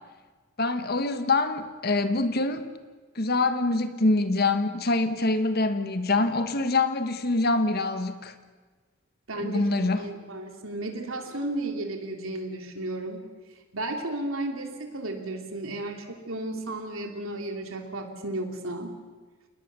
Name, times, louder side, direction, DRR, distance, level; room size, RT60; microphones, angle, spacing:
voice 1, 0.6-2.7 3.1-8.3 9.4-10.1, left 2 dB, 50° left, 9 dB, 1.4 m, -25 dB
voice 2, 9.3-9.6 9.9-13.3 13.7-19.0, right 2 dB, 85° right, 4 dB, 3.1 m, -33 dB
29.0 x 19.5 x 6.9 m, 1.4 s
head